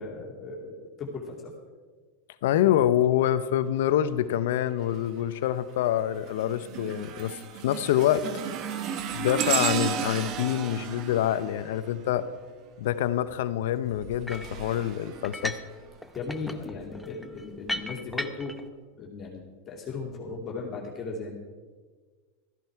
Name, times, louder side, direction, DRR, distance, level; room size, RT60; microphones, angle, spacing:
voice 1, 0.0-1.5 16.1-18.6 18.9-21.3, left 4 dB, 30° left, -2 dB, 2.5 m, -37 dB
voice 2, 2.4-8.3 9.1-12.3 12.8-15.6, left 11 dB, 70° left, 14 dB, 0.7 m, -26 dB
sound 1, 4.8-5.2 5.7-12.5 13.8-16.0 16.6-16.8 17.7-17.8, right 8 dB, 45° right, 1.2 m, -34 dB
sound 2, 14.3-14.6 15.2-15.7 16.0-18.6, left 1 dB, 5° left, 0.8 m, -36 dB
14.0 x 10.5 x 4.7 m, 1.4 s
hypercardioid pair, 110°, 0 cm